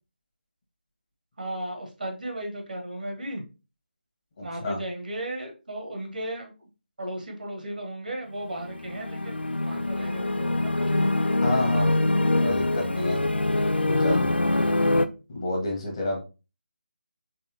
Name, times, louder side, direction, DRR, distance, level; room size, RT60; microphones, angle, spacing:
voice 1, 1.4-3.4 4.4-6.7 7.0-11.4, right 1 dB, 60° right, 3 dB, 1.2 m, -35 dB
sound 1, 8.5-15.1, left 2 dB, 85° left, 0.4 m, -24 dB
voice 2, 11.4-11.9 12.4-13.2 13.9-14.3 15.3-16.2, left 1 dB, 35° left, 0 dB, 1.3 m, -28 dB
4.2 x 3.2 x 2.8 m, 0.31 s
figure-of-eight pair, 155°, 6 cm